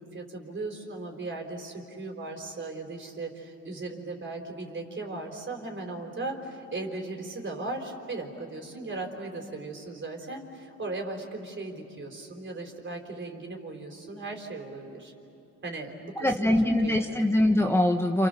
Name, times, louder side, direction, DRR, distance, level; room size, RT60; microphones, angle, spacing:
voice 1, 0.0-15.1 15.6-16.5 16.8-17.2, right 2 dB, 40° right, 2 dB, 4.4 m, -37 dB
voice 2, 16.2-18.3, left 1 dB, 10° left, 3 dB, 1.3 m, -23 dB
29.0 x 28.5 x 6.9 m, 2.9 s
cardioid pair, 90°, 30 cm